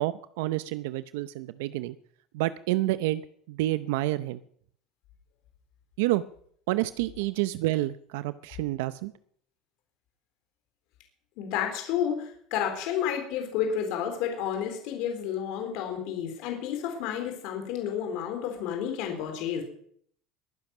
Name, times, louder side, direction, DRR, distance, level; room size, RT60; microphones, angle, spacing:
voice 1, 0.0-2.0 2.3-3.2 3.5-4.4 6.0-6.2 6.7-9.1, right 17 dB, 85° right, 14 dB, 0.7 m, -28 dB
voice 2, 11.4-19.6, left 9 dB, 65° left, 3 dB, 4.1 m, -31 dB
21.5 x 10.0 x 6.1 m, 0.62 s
supercardioid pair, 135°, 0 cm